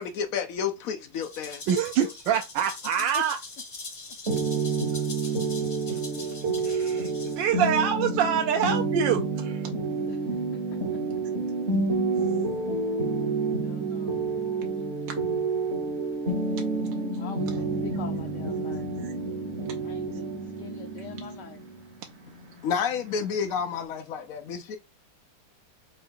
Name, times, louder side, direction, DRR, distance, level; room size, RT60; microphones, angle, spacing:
voice 1, 0.0-1.6 22.6-24.8, left 7 dB, 90° left, 0.7 m, -30 dB
Rattle (instrument), 1.1-7.7, left 3 dB, 40° left, 0.8 m, -42 dB
voice 2, 1.7-3.4 5.2-5.4 5.9-6.0 6.6-9.7 19.0-19.1, right 8 dB, 75° right, 1.1 m, -26 dB
sound 1, 4.3-23.8, right 3 dB, 45° right, 0.9 m, -29 dB
voice 3, 13.6-14.3 17.2-18.9 19.8-20.3 20.6-21.6, left 7 dB, 70° left, 1.0 m, -43 dB
4.8 x 2.3 x 4.4 m
omnidirectional pair, 2.3 m